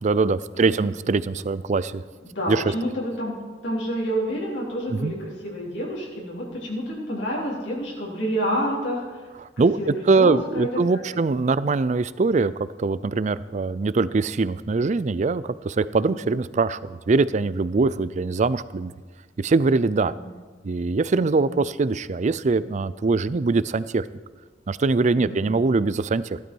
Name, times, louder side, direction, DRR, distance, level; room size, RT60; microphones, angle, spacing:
voice 1, 0.0-2.0 2.5-2.6 4.9-5.1 9.4-12.5 12.8-18.9 19.4-20.1 20.6-24.1 24.7-26.4, right 3 dB, 40° right, 16 dB, 0.4 m, -22 dB
voice 2, 0.5-0.9 2.2-3.4 3.6-9.2 9.6-11.2 20.2-20.3 21.1-21.5 25.1-25.4, equal, 80° left, -4 dB, 3.7 m, -29 dB
15.5 x 12.0 x 4.6 m, 1.4 s
head